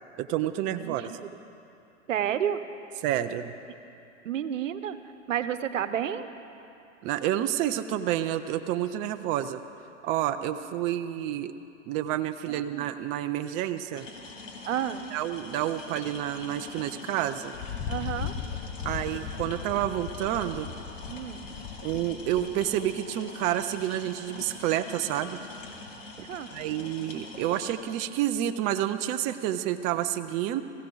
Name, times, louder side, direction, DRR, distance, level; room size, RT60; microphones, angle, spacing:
voice 1, 0.2-1.1 3.0-3.5 7.0-9.6 10.0-11.5 11.9-14.1 15.1-17.5 18.8-20.7 21.8-25.4 26.5-30.6, right 12 dB, 20° right, 9 dB, 0.3 m, -29 dB
voice 2, 0.7-1.3 2.1-2.6 4.2-5.0 5.3-6.3 10.6-10.7 12.7-12.9 14.7-15.1 17.9-18.3 21.1-21.5 26.2-26.5, right 10 dB, 80° right, 11 dB, 0.9 m, -31 dB
sound 1, 13.9-27.8, left 3 dB, 85° left, 2.6 m, -44 dB
Thunder, 17.5-23.0, left 8 dB, 30° left, 1.0 m, -38 dB
21.5 x 15.5 x 3.9 m, 2.7 s
hypercardioid pair, 115°, 37 cm